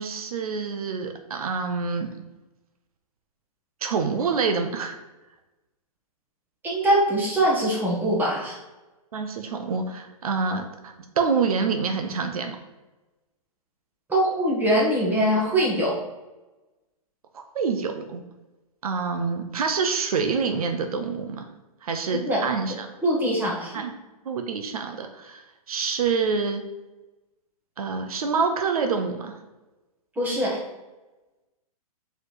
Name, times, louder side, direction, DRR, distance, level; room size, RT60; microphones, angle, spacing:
voice 1, 0.0-2.1 3.8-5.0 9.1-12.6 17.3-18.2 18.8-21.5 21.8-22.9 23.7-23.9 24.2-26.6 27.8-29.4, right 5 dB, 75° right, 6 dB, 0.8 m, -27 dB
voice 2, 6.6-8.6 14.1-16.0 22.1-22.4 23.0-23.7 30.1-30.6, right 1 dB, 10° right, -4 dB, 1.7 m, -22 dB
4.8 x 4.4 x 4.8 m, 1.1 s
hypercardioid pair, 145°, 19 cm